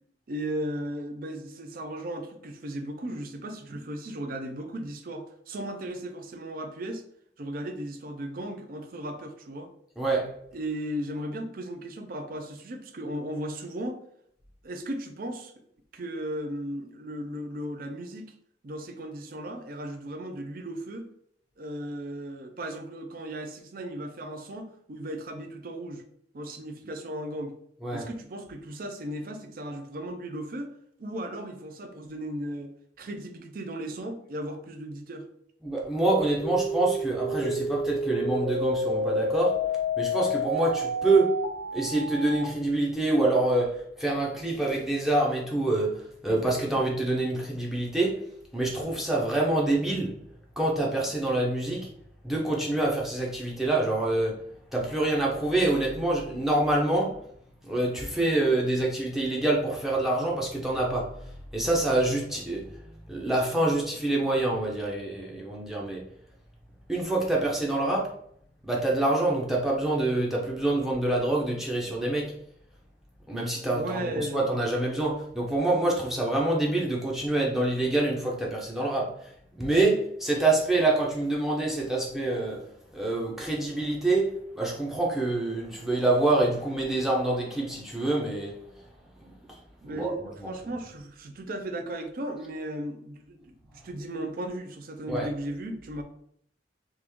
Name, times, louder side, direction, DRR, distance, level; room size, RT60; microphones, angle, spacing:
voice 1, 0.3-7.0 7.4-9.7 10.5-14.0 14.6-15.5 15.9-18.3 18.6-21.1 21.6-26.0 26.3-27.6 27.9-30.7 31.0-35.3 73.7-74.4 85.7-85.8 89.8-96.0, right 1 dB, 50° right, 6 dB, 0.5 m, -36 dB
voice 2, 10.0-10.3 27.8-28.1 35.6-39.6 40.0-41.3 41.7-48.2 48.5-50.2 50.6-51.9 52.2-54.4 54.7-57.1 57.6-62.7 63.1-66.0 66.9-68.1 68.6-72.3 73.3-82.6 82.9-88.6 89.2-89.6 89.9-90.5 95.1-95.3, right 2 dB, ahead, -3 dB, 0.6 m, -26 dB
sound 1, 36.4-42.4, left 1 dB, 75° left, 0.6 m, -29 dB
3.1 x 2.5 x 3.4 m, 0.68 s
head